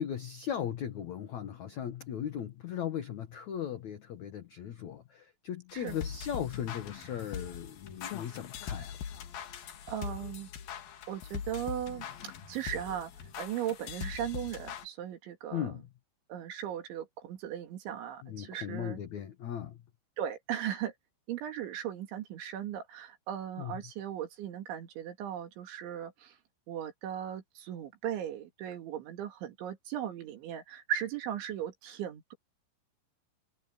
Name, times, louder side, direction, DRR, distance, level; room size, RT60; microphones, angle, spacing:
voice 1, 0.0-8.9 15.5-15.9 18.2-19.8 23.6-23.8, left 9 dB, 85° left, 1.6 m, -37 dB
sound 1, 5.7-14.9, left 8 dB, 60° left, 3.0 m, -42 dB
voice 2, 9.9-10.5 11.1-13.1 13.4-15.7 16.3-19.0 20.2-20.9 21.3-26.3 26.7-32.3, right 10 dB, 75° right, 4.7 m, -37 dB
omnidirectional pair, 5.5 m